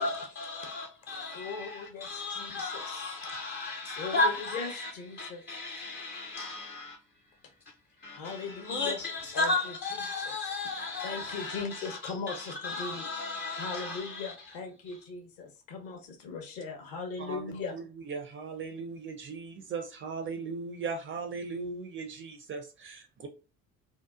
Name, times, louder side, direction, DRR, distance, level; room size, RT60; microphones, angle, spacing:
voice 1, 0.0-4.9 5.2-7.0 8.0-14.3, left 2 dB, 25° left, 0.4 m, -34 dB
voice 2, 1.3-3.6 3.9-5.4 8.1-9.0 9.3-10.5 11.0-13.3 13.6-17.8, left 4 dB, 50° left, 0.9 m, -39 dB
voice 3, 17.3-23.3, right 4 dB, 30° right, 0.4 m, -38 dB
2.8 x 2.1 x 2.3 m
figure-of-eight pair, 55°, 44 cm